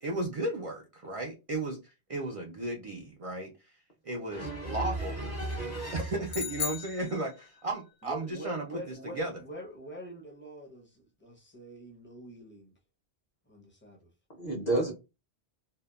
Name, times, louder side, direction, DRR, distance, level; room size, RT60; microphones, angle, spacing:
voice 1, 0.0-3.7 4.0-5.2 5.9-9.4, right 2 dB, 65° right, 0.3 m, -35 dB
voice 2, 4.3-6.0 14.4-14.9, right 2 dB, 45° left, 0.8 m, -32 dB
sound 1, 6.3-7.8, left 7 dB, 85° left, 0.9 m, -36 dB
voice 3, 8.0-12.7 13.5-14.1, right 1 dB, 15° left, 0.5 m, -45 dB
2.7 x 2.2 x 2.3 m
omnidirectional pair, 1.1 m